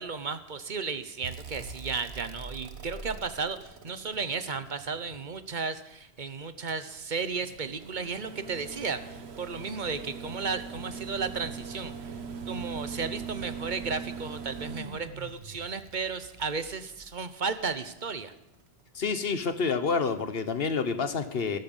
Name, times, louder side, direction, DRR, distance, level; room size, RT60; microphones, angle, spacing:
voice 1, 0.0-11.9 12.5-18.3, right 5 dB, 50° right, 11 dB, 1.1 m, -34 dB
sound 1, 1.2-5.4 6.7-17.9 19.4-19.5, right 5 dB, 85° right, 1.3 m, -42 dB
voice 2, 18.9-21.6, left 5 dB, 65° left, 10 dB, 1.4 m, -28 dB
17.5 x 12.5 x 5.6 m, 0.87 s
omnidirectional pair, 1.1 m